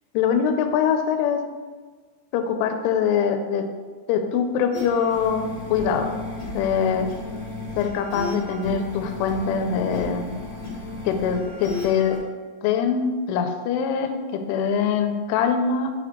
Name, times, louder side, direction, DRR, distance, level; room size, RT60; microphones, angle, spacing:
voice 1, 0.1-1.4 2.3-3.7 4.1-6.1 6.5-7.1 7.8-10.3 11.1-12.2 12.6-15.9, left 7 dB, 85° left, 6 dB, 3.0 m, -23 dB
sound 1, 4.7-12.2, left 3 dB, 60° left, 2.9 m, -34 dB
9.4 x 4.1 x 3.0 m, 1.4 s
omnidirectional pair, 5.5 m